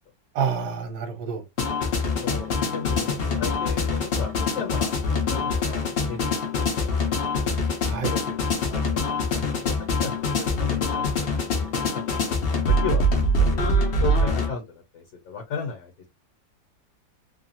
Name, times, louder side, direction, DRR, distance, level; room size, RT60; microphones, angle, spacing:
voice 1, 0.3-1.4 7.8-8.1, right 6 dB, 60° right, 1.3 m, -28 dB
sound 1, 1.6-14.5, left 2 dB, 75° left, 0.5 m, -24 dB
voice 2, 2.2-4.9 5.3-6.4 6.8-6.9 8.0-13.3 14.0-16.1, left 5 dB, 55° left, 1.1 m, -35 dB
3.1 x 2.3 x 2.7 m
omnidirectional pair, 2.0 m